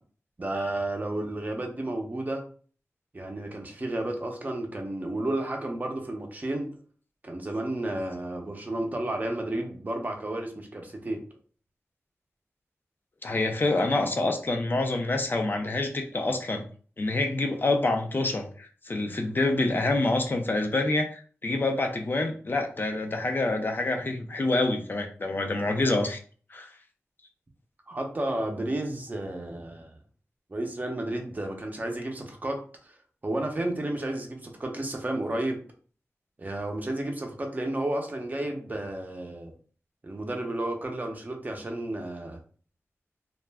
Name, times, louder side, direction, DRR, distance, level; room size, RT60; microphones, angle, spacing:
voice 1, 0.4-2.4 3.1-6.7 7.2-11.2 27.9-29.9 30.5-32.9 33.2-35.6 36.4-39.5 40.0-42.4, right 1 dB, 35° right, 2 dB, 0.6 m, -32 dB
voice 2, 13.2-16.7 17.0-26.2 26.5-26.7, left 2 dB, 40° left, 4 dB, 0.4 m, -27 dB
2.3 x 2.1 x 3.3 m, 0.42 s
wide cardioid pair, 100°, 5 cm